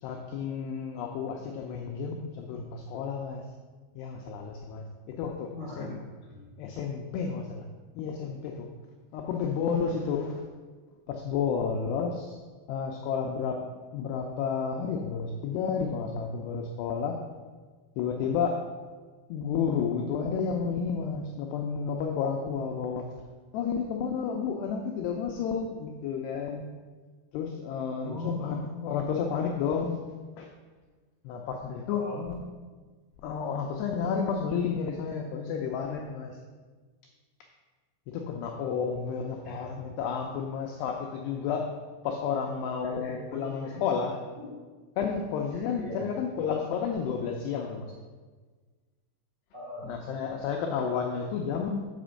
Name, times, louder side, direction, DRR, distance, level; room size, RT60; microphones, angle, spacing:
voice 1, 0.0-3.4 4.0-5.5 5.8-6.0 6.6-7.6 8.0-8.7 9.1-10.4 11.1-12.4 12.7-17.2 18.0-18.6 19.3-23.1 23.5-26.7 27.3-30.0 30.4-30.5 31.3-32.0 33.2-36.4 38.1-41.7 42.0-44.2 45.0-47.9 49.9-51.8, left 6 dB, 85° left, 2 dB, 2.3 m, -31 dB
voice 2, 5.4-6.5 28.0-28.6 31.9-32.4 39.4-39.6 42.8-43.8 44.4-44.5 45.5-46.1 49.5-49.9, left 2 dB, 60° right, -6 dB, 0.6 m, -39 dB
7.8 x 5.1 x 6.2 m, 1.4 s
omnidirectional pair, 5.5 m